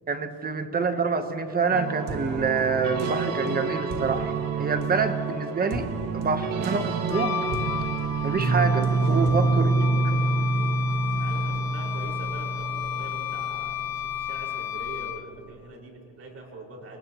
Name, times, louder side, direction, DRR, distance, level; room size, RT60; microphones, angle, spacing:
voice 1, 0.1-4.3 4.6-5.9 6.1-7.4 8.2-9.8, right 4 dB, 25° right, 7 dB, 1.1 m, -27 dB
sound 1, 1.7-14.3, right 3 dB, 60° right, 1.9 m, -27 dB
voice 2, 4.5-5.1 9.1-9.7 11.0-17.0, right 2 dB, 40° right, -1 dB, 5.2 m, -44 dB
Wind instrument woodwind instrument, 7.1-15.4, left 9 dB, 65° left, 1.1 m, -33 dB
29.5 x 29.0 x 3.1 m, 2.6 s
cardioid pair, 175°, 37 cm